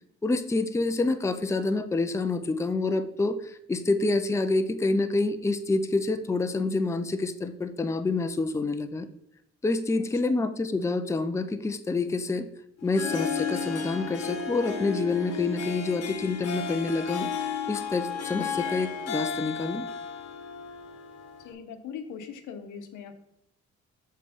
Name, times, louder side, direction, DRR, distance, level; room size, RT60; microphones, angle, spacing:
voice 1, 0.2-9.1 9.6-12.5 12.8-17.3 17.7-19.8, left 3 dB, 10° left, 9 dB, 0.5 m, -27 dB
Harp, 12.8-21.5, left 6 dB, 55° left, 1.1 m, -33 dB
voice 2, 21.4-23.2, left 7 dB, 85° left, 8 dB, 0.9 m, -40 dB
6.7 x 3.3 x 5.0 m, 0.83 s
cardioid pair, 90°, 30 cm